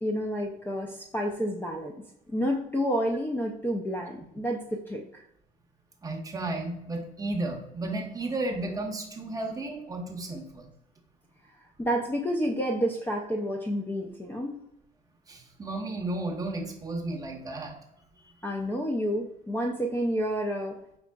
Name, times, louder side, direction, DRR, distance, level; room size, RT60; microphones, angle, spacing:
voice 1, 0.0-5.2 11.8-14.5 18.4-20.8, equal, 10° left, 1 dB, 0.4 m, -30 dB
voice 2, 6.0-10.7 15.3-17.7, right 2 dB, 20° right, 2 dB, 0.8 m, -33 dB
4.9 x 3.6 x 2.3 m, 0.82 s
cardioid pair, 110°, 17 cm